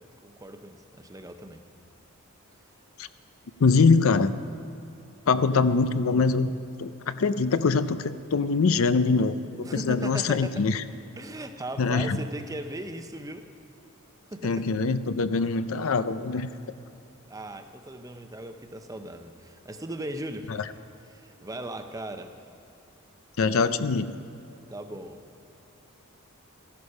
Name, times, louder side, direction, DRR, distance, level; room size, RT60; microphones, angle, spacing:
voice 1, 0.2-1.6 9.6-10.7 11.2-13.5 14.3-14.7 16.3-16.6 17.3-20.5 21.1-22.4 24.7-25.2, right 1 dB, 15° right, 7 dB, 0.6 m, -38 dB
voice 2, 3.6-4.3 5.3-6.5 6.8-10.8 11.8-12.2 14.4-16.5 23.4-24.2, left 4 dB, 70° left, 13 dB, 0.5 m, -23 dB
14.5 x 11.5 x 5.4 m, 2.8 s
head